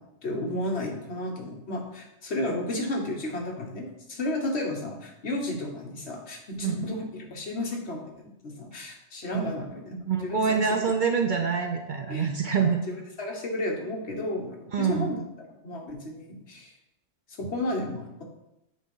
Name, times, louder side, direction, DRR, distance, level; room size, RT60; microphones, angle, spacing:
voice 1, 0.0-10.0 10.2-10.8 12.1-15.2 15.6-16.7 17.4-18.2, left 1 dB, 60° left, 1 dB, 1.4 m, -33 dB
voice 2, 10.1-12.8 14.7-15.2, right 6 dB, 50° right, 4 dB, 0.6 m, -26 dB
7.4 x 3.7 x 5.4 m, 0.87 s
omnidirectional pair, 1.3 m